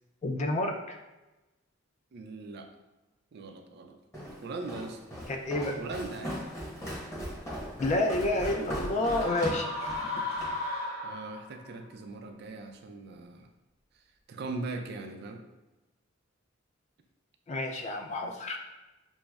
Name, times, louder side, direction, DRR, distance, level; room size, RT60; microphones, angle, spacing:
voice 1, 0.2-1.0 5.3-5.8 7.8-10.2 17.5-18.6, left 2 dB, 35° left, 3 dB, 0.3 m, -30 dB
voice 2, 2.1-2.7 3.3-4.0 4.4-5.0 5.8-6.4 11.0-13.5 14.3-15.4, right 3 dB, 55° right, 4 dB, 0.4 m, -40 dB
Walk footsteps, 4.1-10.6, equal, 15° left, 0.8 m, -38 dB
sound 1, 9.0-11.6, left 2 dB, 85° left, 1.1 m, -35 dB
6.0 x 2.0 x 2.3 m, 1.1 s
head